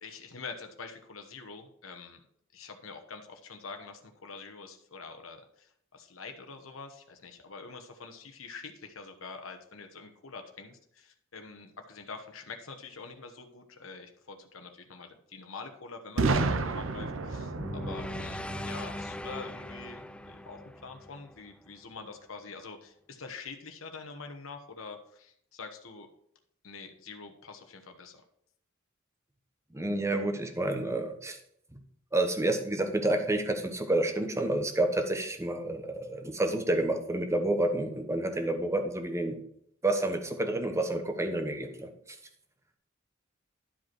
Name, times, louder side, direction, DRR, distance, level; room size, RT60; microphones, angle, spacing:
voice 1, 0.0-2.2 2.5-26.1 26.6-28.2, left 4 dB, 85° left, 5 dB, 1.1 m, -45 dB
Boom, 16.2-20.0, right 3 dB, 70° right, 0.7 m, -31 dB
sound 1, 17.6-21.8, left 1 dB, 5° left, 0.3 m, -40 dB
voice 2, 29.7-31.4 31.7-31.8 32.1-39.4 39.8-42.2, right 1 dB, 15° right, 5 dB, 1.0 m, -29 dB
11.5 x 5.1 x 4.6 m, 0.70 s
head